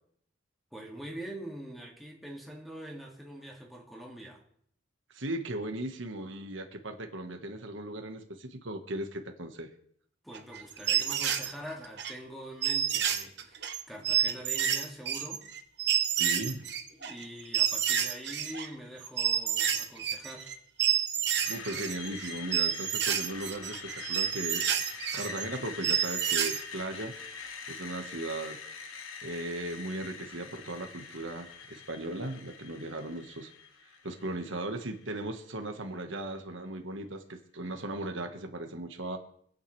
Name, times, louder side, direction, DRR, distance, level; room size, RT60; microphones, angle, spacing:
voice 1, 0.7-4.4 10.2-15.5 16.9-20.6, right 1 dB, ahead, 2.2 m, -44 dB
voice 2, 5.1-9.7 16.2-16.7 21.5-24.7 25.1-27.2 27.7-28.6 29.2-33.5 34.0-39.2, right 1 dB, 70° right, 1.4 m, -37 dB
sound 1, 10.3-12.1 12.6-18.7 19.0-20.5 20.8-26.6, right 9 dB, 55° right, 1.1 m, -29 dB
Screech, 21.4-35.4, left 5 dB, 85° left, 1.4 m, -44 dB
25.5 x 9.0 x 3.3 m
head